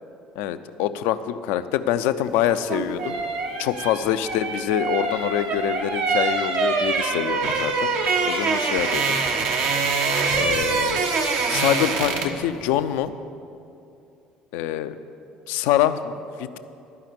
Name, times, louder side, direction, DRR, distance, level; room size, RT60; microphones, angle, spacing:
voice 1, 0.4-3.2 3.6-9.2 10.3-11.1 11.5-13.1 14.5-15.0 15.5-16.6, left 11 dB, 65° left, 11 dB, 0.4 m, -25 dB
sound 1, 2.5-12.5 12.7-12.9, right 4 dB, 60° right, 0.9 m, -24 dB
12.0 x 5.6 x 8.5 m, 2.6 s
figure-of-eight pair, 55°, 4 cm